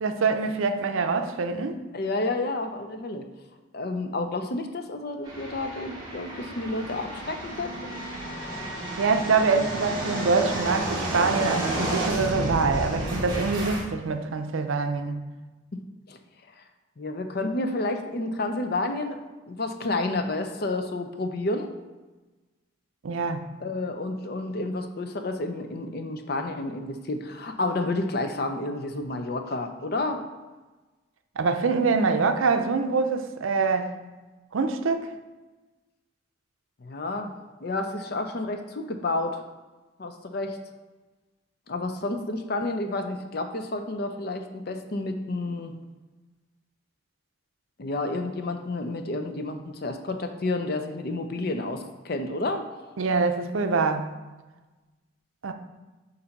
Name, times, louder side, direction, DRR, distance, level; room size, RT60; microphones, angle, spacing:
voice 1, 0.0-1.8 9.0-15.2 23.0-23.5 31.4-33.9 34.5-35.1 53.0-54.1 55.4-55.5, right 4 dB, 80° right, 0.5 m, -25 dB
voice 2, 1.9-3.3 3.7-7.9 15.7-15.8 16.1-16.2 17.0-19.2 19.5-21.7 23.6-30.2 36.8-37.3 37.6-39.4 40.0-40.6 41.7-45.7 47.8-52.6, left 2 dB, 50° left, 0.5 m, -30 dB
sound 1, 5.2-13.8, right 1 dB, 20° right, 1.8 m, -31 dB
7.0 x 2.7 x 5.2 m
head